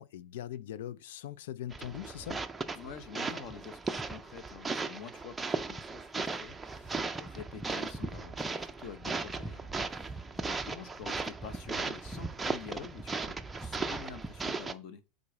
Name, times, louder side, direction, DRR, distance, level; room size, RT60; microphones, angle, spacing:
voice 1, 0.0-2.4, left 11 dB, 85° left, 0.4 m, -41 dB
sound 1, 1.7-14.7, right 3 dB, 10° right, 0.4 m, -37 dB
voice 2, 2.7-15.0, left 6 dB, 45° left, 1.0 m, -47 dB
8.5 x 3.9 x 5.0 m
supercardioid pair, 170°, 0 cm